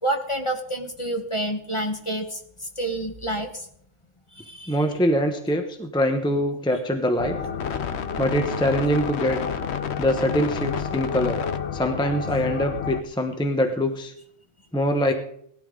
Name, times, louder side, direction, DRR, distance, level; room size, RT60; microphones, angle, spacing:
voice 1, 0.0-3.7 4.3-4.8, right 1 dB, 25° left, 4 dB, 1.3 m, -29 dB
voice 2, 4.7-7.4 8.2-9.4 10.0-11.4 11.7-14.1 14.7-15.1, equal, 5° left, 5 dB, 0.9 m, -23 dB
sound 1, 7.2-13.0, left 7 dB, 65° left, 1.0 m, -29 dB
18.0 x 13.0 x 3.8 m, 0.69 s
omnidirectional pair, 1.3 m